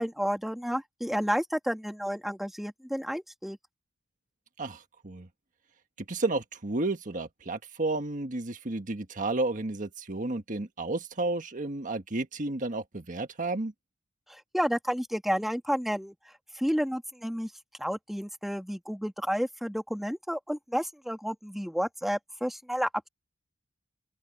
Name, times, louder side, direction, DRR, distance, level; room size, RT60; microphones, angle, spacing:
voice 1, 0.0-3.6 14.3-16.1 16.6-17.5 17.8-22.9, equal, ahead, 2.8 m, -31 dB
voice 2, 4.6-5.3 6.1-13.7, right 2 dB, 40° right, 1.5 m, -32 dB
open air
head